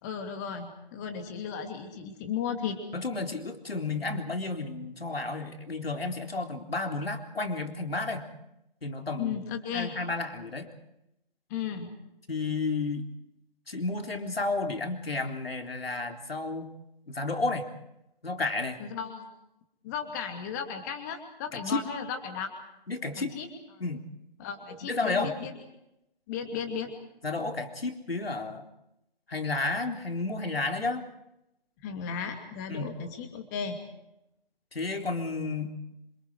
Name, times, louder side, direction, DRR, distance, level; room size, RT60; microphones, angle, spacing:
voice 1, 0.0-2.8 9.2-9.9 11.5-11.9 18.8-19.3 19.8-22.5 23.2-23.5 24.4-25.5 26.3-26.9 31.8-33.8, left 7 dB, 20° left, 5 dB, 2.5 m, -35 dB
voice 2, 2.9-8.3 8.8-9.4 9.7-10.7 12.3-13.1 13.7-16.7 17.1-17.7 18.2-18.8 21.5-21.8 22.9-23.4 23.8-24.1 24.9-25.4 27.2-28.7 29.3-31.1 32.7-32.9 34.7-35.7, left 3 dB, 75° left, 4 dB, 3.8 m, -32 dB
27.5 x 27.0 x 4.8 m, 0.85 s
figure-of-eight pair, 155°, 30 cm